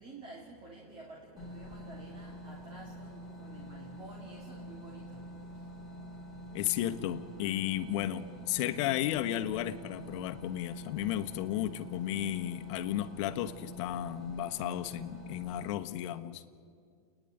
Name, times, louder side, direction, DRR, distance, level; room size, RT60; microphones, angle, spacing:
voice 1, 0.0-5.7, right 2 dB, 25° right, -2 dB, 2.6 m, -51 dB
sound 1, 1.4-15.7, equal, ahead, 2.9 m, -46 dB
voice 2, 6.5-16.4, left 12 dB, 50° left, 9 dB, 1.1 m, -34 dB
29.0 x 10.5 x 9.2 m, 2.2 s
supercardioid pair, 150°, 19 cm